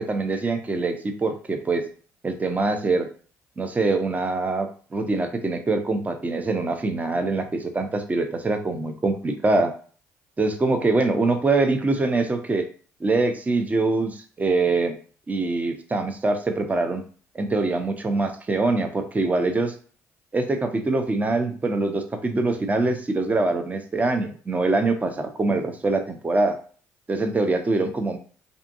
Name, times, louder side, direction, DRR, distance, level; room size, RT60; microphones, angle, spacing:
voice 1, 0.0-1.8 2.2-3.1 3.6-9.7 10.4-12.7 13.0-15.0 15.3-17.0 17.3-19.7 20.3-26.6 27.1-28.2, right 3 dB, 25° right, 6 dB, 0.5 m, -24 dB
2.6 x 2.5 x 2.5 m, 0.41 s
supercardioid pair, 65°, 6 cm